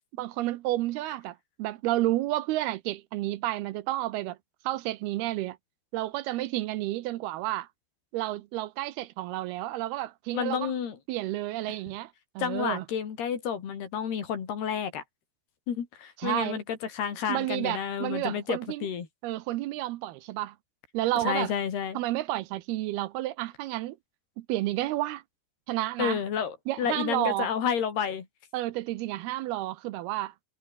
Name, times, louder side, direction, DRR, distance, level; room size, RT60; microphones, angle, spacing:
voice 1, 0.2-4.4 4.6-5.6 5.9-7.7 8.1-10.7 11.1-12.9 16.2-16.6 17.3-18.9 19.2-20.6 20.9-21.5 21.9-24.0 24.4-25.2 25.7-26.2 26.7-27.5 28.5-30.3, right 16 dB, 80° right, 2.7 m, -31 dB
voice 2, 10.3-11.0 12.4-15.0 15.7-19.1 21.3-22.0 26.0-28.3, left 8 dB, 75° left, 5.1 m, -30 dB
omnidirectional pair, 4.7 m